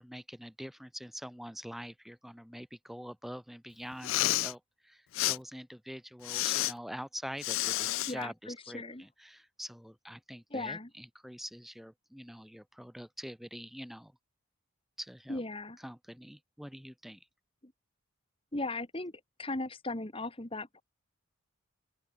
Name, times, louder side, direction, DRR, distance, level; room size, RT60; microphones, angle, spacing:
voice 1, 0.0-14.1 15.0-15.4 15.8-17.3, equal, ahead, 1.7 m, -45 dB
Respiratory sounds, 3.9-4.5 5.1-5.4 6.2-6.7 7.4-8.1, left 16 dB, 70° left, 0.4 m, -30 dB
voice 2, 8.1-9.0 10.5-10.9 15.3-15.8 18.5-19.1 19.4-20.8, left 2 dB, 25° left, 1.6 m, -37 dB
open air
head